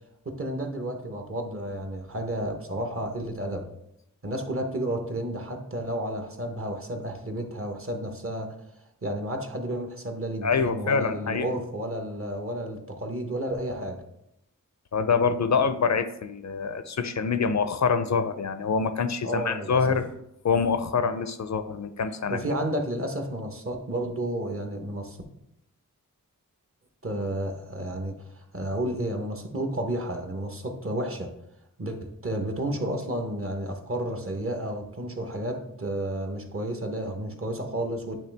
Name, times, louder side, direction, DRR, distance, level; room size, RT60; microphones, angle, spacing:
voice 1, 0.2-3.7 4.2-8.5 9.0-14.0 19.2-19.8 22.3-25.2 27.0-31.3 31.8-38.2, right 1 dB, 40° right, 4 dB, 0.9 m, -31 dB
voice 2, 10.4-11.5 14.9-20.0 20.4-22.4, left 5 dB, 55° left, 10 dB, 0.5 m, -25 dB
8.5 x 3.3 x 3.3 m, 0.82 s
wide cardioid pair, 65°, 33 cm